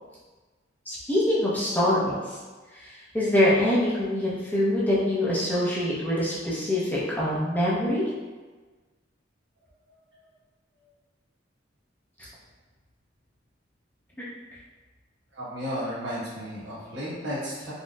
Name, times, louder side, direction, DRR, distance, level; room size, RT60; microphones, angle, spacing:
voice 1, 0.9-2.1 2.8-8.1, left 1 dB, 10° left, -9 dB, 0.5 m, -24 dB
voice 2, 15.3-17.7, equal, 70° right, -9 dB, 1.1 m, -33 dB
4.1 x 2.0 x 2.2 m, 1.3 s
head